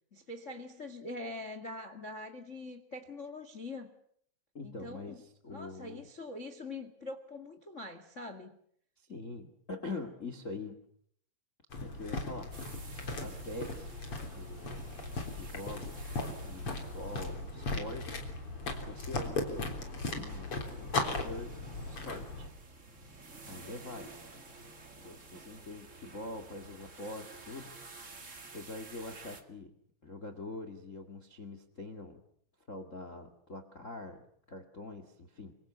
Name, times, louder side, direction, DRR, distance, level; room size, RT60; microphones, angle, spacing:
voice 1, 0.1-3.9 4.6-5.2 5.5-8.5, left 2 dB, 85° left, 8 dB, 0.6 m, -43 dB
voice 2, 4.5-6.1 9.0-10.8 11.8-12.5 13.2-14.0 14.3-14.9 15.3-16.1 16.4-18.2 18.8-19.7 20.1-21.5 21.9-22.5 23.5-24.3 25.0-28.1 28.5-29.8 30.0-32.2 32.7-35.6, left 2 dB, 50° left, 9 dB, 0.8 m, -44 dB
sound 1, 11.7-22.5, left 3 dB, 30° left, 3.9 m, -37 dB
sound 2, 12.5-29.4, right 3 dB, 60° right, 0.7 m, -53 dB
28.0 x 24.5 x 7.1 m, 0.66 s
omnidirectional pair, 5.3 m